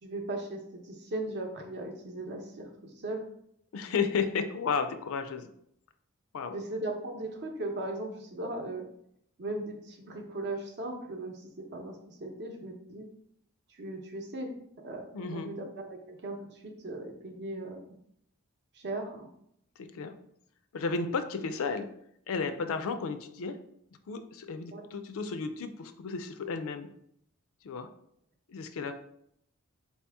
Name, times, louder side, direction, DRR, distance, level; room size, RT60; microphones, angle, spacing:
voice 1, 0.0-3.3 6.5-8.9 9.4-13.1 13.7-14.5 14.8-18.0 18.7-19.3 24.7-24.8, right 2 dB, 50° right, 3 dB, 0.8 m, -38 dB
voice 2, 3.7-5.5 6.3-6.6 15.1-15.5 19.8-20.1 20.7-21.9 22.3-23.6 24.1-26.9 27.6-27.9 28.5-28.9, left 5 dB, 65° left, 9 dB, 0.4 m, -33 dB
4.4 x 2.8 x 3.4 m, 0.72 s
head